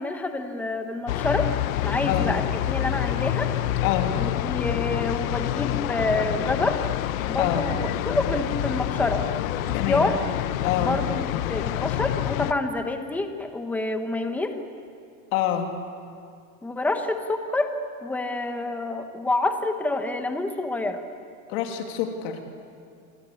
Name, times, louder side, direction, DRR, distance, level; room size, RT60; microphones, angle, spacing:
voice 1, 0.0-1.5 1.8-3.5 4.2-6.8 7.3-9.3 9.7-10.2 10.8-14.7 16.6-17.7 18.0-21.0, left 2 dB, 5° left, 6 dB, 1.2 m, -27 dB
sound 1, 1.1-12.5, left 13 dB, 75° left, 1.2 m, -27 dB
voice 2, 3.8-4.1 7.4-7.7 9.7-10.1 10.6-11.0 15.3-15.7 21.5-22.6, left 10 dB, 45° left, 4 dB, 2.8 m, -26 dB
28.5 x 24.5 x 8.5 m, 2.3 s
supercardioid pair, 175°, 42 cm